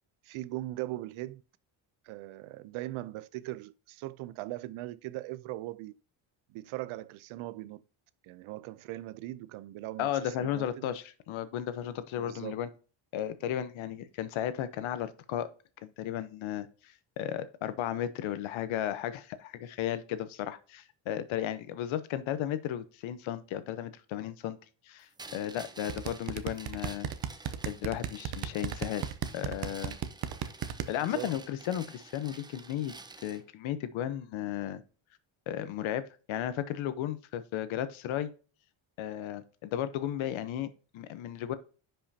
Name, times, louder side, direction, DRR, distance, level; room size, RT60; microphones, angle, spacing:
voice 1, 0.2-1.4 2.0-5.9 6.5-7.8 8.2-10.9 12.2-12.6 31.0-31.3, right 16 dB, 80° right, 0.7 m, -40 dB
voice 2, 10.0-12.7 13.1-15.5 15.8-24.6 24.9-27.1 27.7-29.1 29.3-30.0 30.9-32.9 33.2-34.8 35.5-38.3 39.0-41.6, left 11 dB, 70° left, 1.0 m, -34 dB
sound 1, 25.2-33.4, right 3 dB, 10° right, 0.4 m, -50 dB
sound 2, 25.9-30.9, right 9 dB, 50° right, 0.8 m, -33 dB
10.0 x 5.6 x 2.8 m
cardioid pair, 155°, 49 cm